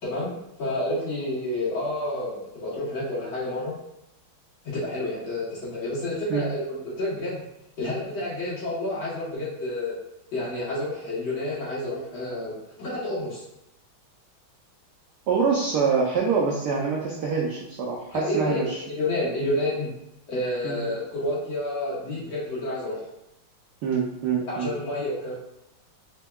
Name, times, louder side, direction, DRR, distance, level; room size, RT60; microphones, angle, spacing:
voice 1, 0.0-0.3 0.6-3.7 4.6-7.4 7.8-9.9 10.3-13.4 18.1-19.9 20.3-23.0 24.5-25.3, left 1 dB, 70° left, -9 dB, 2.3 m, -29 dB
voice 2, 15.3-18.8 20.6-20.9 23.8-24.7, right 5 dB, 85° right, -2 dB, 0.9 m, -25 dB
4.3 x 2.7 x 2.2 m, 0.85 s
omnidirectional pair, 2.3 m